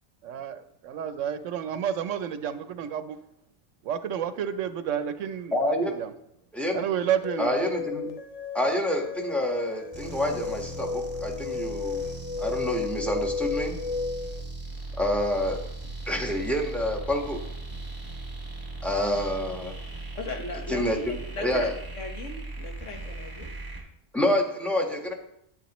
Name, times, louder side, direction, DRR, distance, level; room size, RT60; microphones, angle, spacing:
voice 1, 0.2-3.2 3.8-6.1 6.7-7.7, right 9 dB, 80° right, 11 dB, 1.0 m, -30 dB
voice 2, 5.5-6.0 6.5-6.8 7.4-8.1 8.5-12.0 12.4-13.7 15.0-15.6 16.1-17.4 18.8-19.7 20.7-21.7 24.1-25.1, left 1 dB, ahead, 0 dB, 1.2 m, -27 dB
sound 1, 7.2-14.4, left 5 dB, 55° left, 0.4 m, -33 dB
sound 2, 9.9-23.8, right 2 dB, 15° right, 2.1 m, -38 dB
voice 3, 20.1-21.7 21.9-23.5, left 2 dB, 75° left, 2 dB, 1.6 m, -38 dB
10.0 x 8.5 x 3.0 m, 0.76 s
omnidirectional pair, 1.3 m